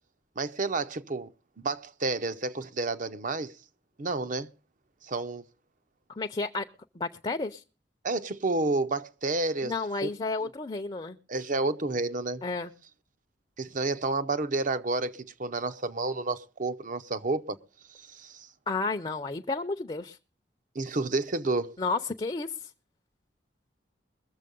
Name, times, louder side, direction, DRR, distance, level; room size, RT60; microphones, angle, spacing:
voice 1, 0.4-1.3 1.6-3.5 4.0-4.5 5.0-5.4 8.0-10.1 11.3-12.4 13.6-17.6 17.9-18.5 20.7-21.8, right 3 dB, 45° right, 0.8 m, -30 dB
voice 2, 6.2-6.6 6.9-7.6 9.6-11.2 12.4-12.7 18.7-20.2 21.8-22.5, left 3 dB, 25° left, 0.6 m, -31 dB
21.5 x 7.3 x 5.3 m
head